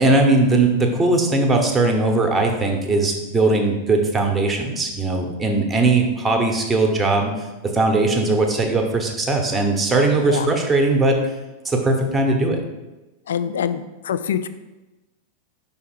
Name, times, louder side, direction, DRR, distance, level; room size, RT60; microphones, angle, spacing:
voice 1, 0.0-11.2 11.6-12.6, right 2 dB, 10° right, 3 dB, 0.9 m, -19 dB
voice 2, 13.3-14.5, left 8 dB, 60° left, 12 dB, 0.3 m, -24 dB
5.6 x 3.6 x 4.7 m, 1.1 s
figure-of-eight pair, 90°, 0 cm